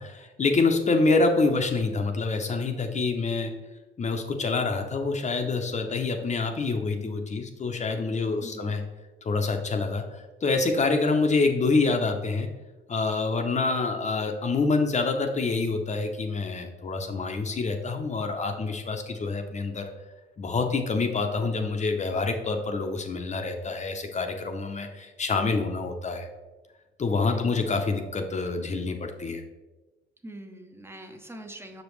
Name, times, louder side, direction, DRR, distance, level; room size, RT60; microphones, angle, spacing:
voice 1, 0.0-3.5 4.0-8.8 9.2-12.5 12.9-19.9 20.4-26.3 27.0-29.4, left 3 dB, 35° left, 5 dB, 0.7 m, -26 dB
voice 2, 8.4-8.7 27.2-27.6 30.2-31.8, right 1 dB, 10° right, 5 dB, 0.7 m, -43 dB
6.1 x 5.1 x 3.1 m, 1.2 s
cardioid pair, 90°, 20 cm